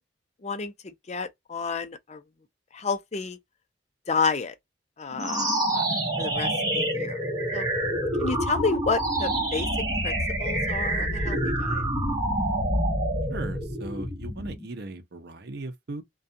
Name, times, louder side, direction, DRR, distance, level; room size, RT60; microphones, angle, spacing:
voice 1, 0.4-0.7 1.1-2.2 2.7-3.4 4.1-4.5 5.0-5.8 6.2-7.2 7.5-7.7 8.2-9.7 10.0-11.8, left 4 dB, 35° left, 0.5 m, -30 dB
sound 1, 5.1-14.6, right 1 dB, 20° right, 1.2 m, -27 dB
voice 2, 13.3-16.0, right 2 dB, 60° right, 0.7 m, -37 dB
2.3 x 2.3 x 2.6 m
head